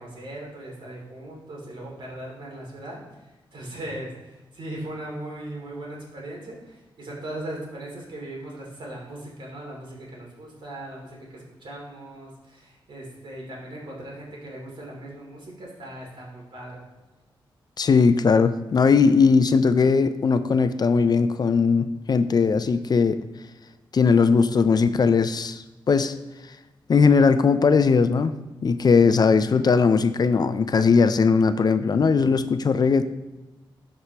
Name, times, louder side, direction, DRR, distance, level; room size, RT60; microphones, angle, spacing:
voice 1, 0.0-3.2 3.5-16.8, right 1 dB, 65° right, -2 dB, 2.7 m, -38 dB
voice 2, 17.8-23.2 23.9-26.1 26.9-28.3 28.6-33.0, left 5 dB, 50° left, 11 dB, 0.4 m, -19 dB
12.5 x 4.8 x 2.9 m, 1.1 s
cardioid pair, 75°, 9 cm